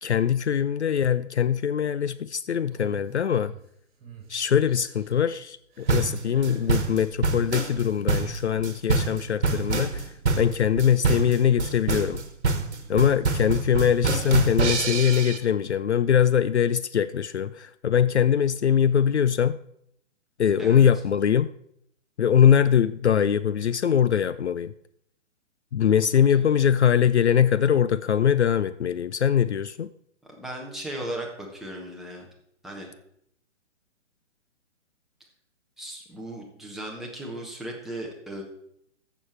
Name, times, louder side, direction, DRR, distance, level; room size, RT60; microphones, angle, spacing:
voice 1, 0.0-3.5 4.3-12.2 12.9-19.6 20.4-21.5 22.2-24.7 25.7-29.9, left 8 dB, 65° left, 14 dB, 0.5 m, -22 dB
sound 1, 2.7-3.6 4.0-4.3 4.6-5.1 5.7-6.7 7.6-8.0, right 5 dB, 30° right, 3.2 m, -45 dB
sound 2, 5.9-15.4, right 4 dB, 60° right, 1.6 m, -25 dB
voice 2, 20.6-20.9 26.4-26.5 30.4-32.3 32.6-32.9 35.8-38.4, right 1 dB, ahead, -2 dB, 1.3 m, -36 dB
14.0 x 7.0 x 4.6 m, 0.72 s
figure-of-eight pair, 130°, 37 cm